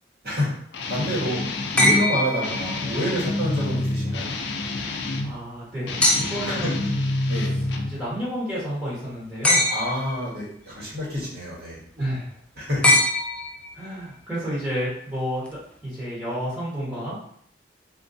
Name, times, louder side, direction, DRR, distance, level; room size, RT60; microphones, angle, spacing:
Guitar, 0.7-2.0 2.4-5.4 5.8-8.0, left 2 dB, 70° left, 0.4 m, -28 dB
voice 1, 0.9-1.4 1.7-4.3 6.4-6.7 7.3-7.5 9.7-11.8 12.6-12.9, equal, 55° right, -6 dB, 1.3 m, -28 dB
sound 1, 1.8-3.1 6.0-6.6 9.4-10.2 12.8-13.9 15.5-15.6, left 1 dB, 5° left, 0.4 m, -22 dB
voice 2, 5.2-7.0 7.9-9.7 11.9-12.2 13.7-17.2, equal, 15° right, -9 dB, 1.1 m, -30 dB
3.7 x 2.5 x 2.6 m, 0.67 s
head